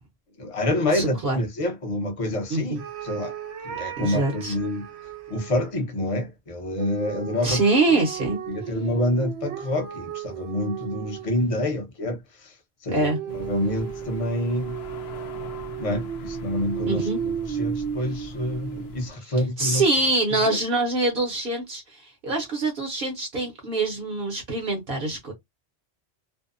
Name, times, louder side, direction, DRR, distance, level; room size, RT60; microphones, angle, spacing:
voice 1, 0.4-3.3 3.6-4.9 5.3-7.6 7.9-8.0 8.5-12.6 12.8-13.1 13.3-14.7 15.8-19.8 20.4-20.6, left 1 dB, 35° left, 0.8 m, -27 dB
voice 2, 0.9-1.4 2.5-2.8 4.0-4.5 7.4-8.4 12.9-13.2 16.9-17.2 19.2-25.3, right 2 dB, 60° right, 0.9 m, -25 dB
sound 1, 2.8-5.7 6.8-11.6 13.0-19.1, right 8 dB, 90° right, 0.9 m, -34 dB
sound 2, 13.3-19.1, left 3 dB, 80° left, 0.8 m, -41 dB
2.6 x 2.1 x 2.4 m
omnidirectional pair, 1.1 m